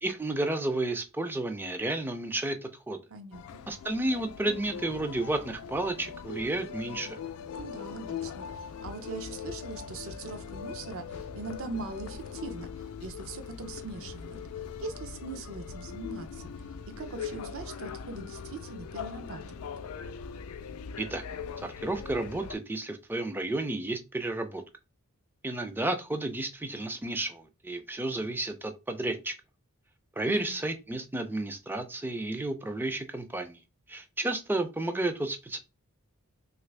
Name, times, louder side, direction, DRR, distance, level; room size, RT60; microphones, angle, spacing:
voice 1, 0.0-3.0 3.7-7.2 21.0-21.2 21.6-24.6 25.4-29.3 30.2-33.6 33.9-35.6, right 2 dB, 10° right, 0.3 m, -32 dB
voice 2, 3.1-3.6 7.6-14.4 14.8-16.7 17.0-19.7 30.2-30.6, right 3 dB, 65° right, 0.6 m, -41 dB
sound 1, 3.3-22.5, left 6 dB, 75° left, 0.4 m, -41 dB
3.0 x 2.5 x 3.2 m
head